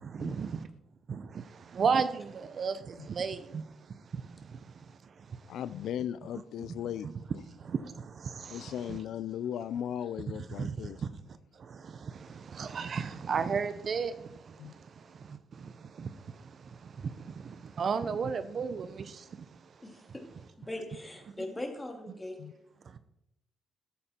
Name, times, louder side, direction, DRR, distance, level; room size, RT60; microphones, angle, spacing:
voice 1, 0.2-0.5 1.1-1.2 1.7-2.8 3.2-3.6 8.9-9.0 10.6-10.7 12.6-14.1 16.0-16.1 17.8-19.0, right 5 dB, 50° right, 0.7 m, -31 dB
voice 2, 5.5-7.1 8.5-11.0 14.6-14.7 22.4-22.5, left 10 dB, 75° left, 0.4 m, -37 dB
voice 3, 19.8-20.2 20.6-22.4, left 1 dB, 15° left, 2.7 m, -40 dB
14.5 x 8.5 x 4.4 m
cardioid pair, 90°, 0 cm